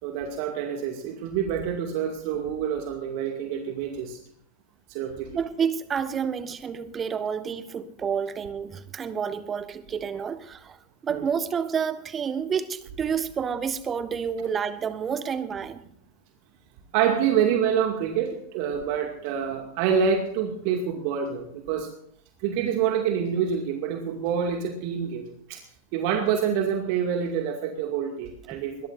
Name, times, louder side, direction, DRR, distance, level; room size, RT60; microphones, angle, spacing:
voice 1, 0.0-4.2 4.9-5.3 11.1-11.2 16.9-21.9 22.4-25.6 25.9-28.9, right 7 dB, 45° right, 2.3 m, -27 dB
voice 2, 5.3-10.8 11.0-15.8 28.5-28.6, right 7 dB, 20° right, 1.4 m, -29 dB
21.5 x 21.0 x 2.6 m
figure-of-eight pair, 90°, 0 cm